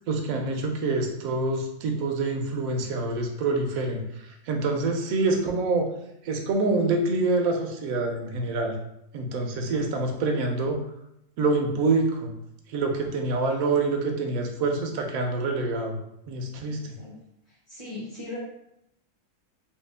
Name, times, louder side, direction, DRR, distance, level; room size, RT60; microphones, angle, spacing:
voice 1, 0.1-5.9 6.2-8.7 9.1-10.8 11.4-12.3 12.7-16.0 16.3-16.8, right 3 dB, 70° right, 3 dB, 1.0 m, -26 dB
voice 2, 16.8-17.2 17.5-18.4, left 2 dB, 30° left, -6 dB, 1.0 m, -39 dB
3.0 x 2.8 x 3.3 m, 0.81 s
omnidirectional pair, 1.7 m